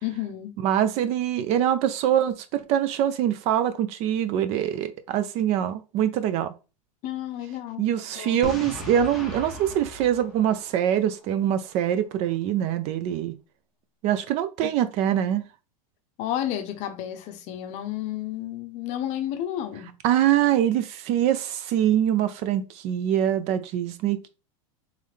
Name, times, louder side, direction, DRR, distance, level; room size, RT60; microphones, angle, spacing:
voice 1, 0.0-0.6 7.0-8.4 14.6-14.7 16.2-19.9, left 12 dB, 40° left, 0.7 m, -32 dB
voice 2, 0.6-6.5 7.8-13.3 14.0-15.4 20.0-24.3, right 10 dB, 40° right, 0.4 m, -24 dB
Boom, 8.4-11.3, left 2 dB, ahead, 1.1 m, -38 dB
3.6 x 3.2 x 3.3 m
supercardioid pair, 135°, 18 cm